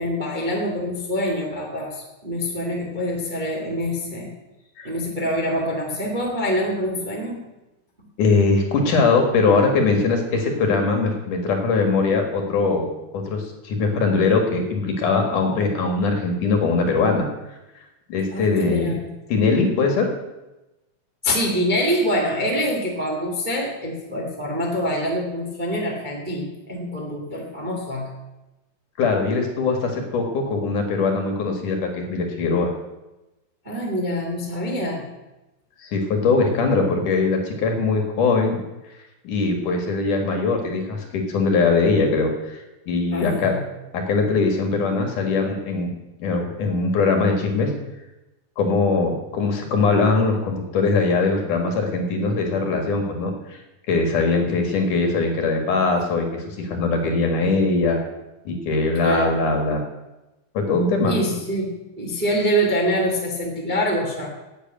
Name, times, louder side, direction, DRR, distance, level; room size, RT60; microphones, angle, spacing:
voice 1, 0.0-4.3 4.8-7.4 18.3-19.0 21.2-28.1 33.6-35.1 43.1-43.7 58.9-59.3 61.0-64.3, equal, 20° right, -1 dB, 1.5 m, -25 dB
voice 2, 8.2-12.9 13.1-17.3 18.1-19.0 19.3-20.1 29.0-32.7 35.8-38.6 39.2-43.5 43.9-45.9 46.2-47.7 48.6-53.6 53.9-58.0 58.4-59.8 60.5-61.2, left 4 dB, 55° left, 3 dB, 3.0 m, -21 dB
11.5 x 8.4 x 9.0 m, 1.0 s
omnidirectional pair, 4.6 m